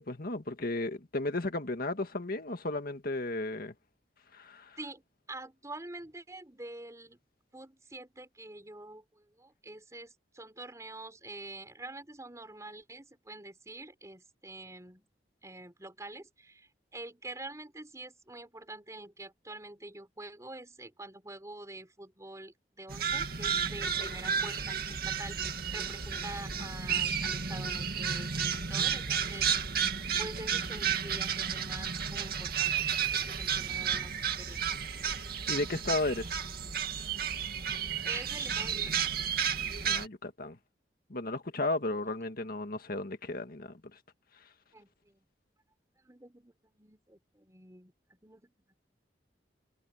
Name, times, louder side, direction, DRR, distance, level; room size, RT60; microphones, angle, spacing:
voice 1, 0.0-3.7 4.3-4.8 35.5-36.3 39.8-40.6 41.1-43.7, left 2 dB, 55° left, 1.8 m, -34 dB
voice 2, 5.3-7.2 7.5-15.1 15.4-29.9 30.2-34.8 37.7-39.1 44.7-45.3 46.0-48.7, right 2 dB, 20° right, 3.8 m, -46 dB
sound 1, 22.9-40.1, right 7 dB, 60° right, 2.2 m, -32 dB
head